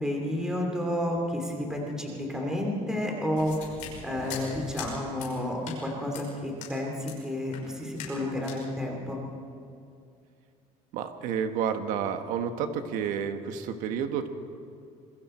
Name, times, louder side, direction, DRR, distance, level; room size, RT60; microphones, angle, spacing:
voice 1, 0.0-3.7 4.0-9.2, left 1 dB, 5° right, 0 dB, 2.8 m, -31 dB
sound 1, 3.4-4.9 5.2-5.3 5.6-5.8 6.1-6.3 6.6-6.7 7.0-7.2 7.5-7.7 8.0-8.2 8.4-8.6, left 6 dB, 60° left, 5.8 m, -41 dB
voice 2, 10.9-14.3, right 7 dB, 65° right, 7 dB, 1.5 m, -30 dB
27.0 x 22.5 x 4.5 m, 2.4 s
cardioid pair, 175°, 14 cm